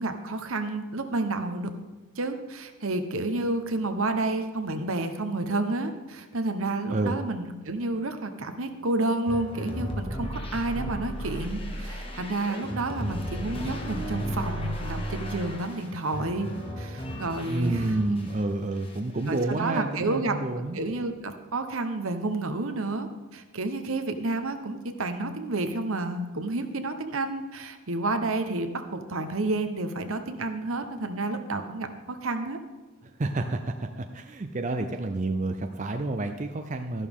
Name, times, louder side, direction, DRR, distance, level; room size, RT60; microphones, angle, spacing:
voice 1, 0.0-1.7 2.2-16.5 16.8-17.9 19.3-20.4 20.7-32.6, right 2 dB, 75° right, 7 dB, 1.0 m, -30 dB
sound 1, 9.3-18.4 18.7-19.6, equal, 25° left, 1.3 m, -35 dB
voice 2, 17.4-20.8 33.0-37.1, right 2 dB, 35° right, 6 dB, 0.5 m, -29 dB
13.5 x 11.0 x 3.6 m, 1.2 s
head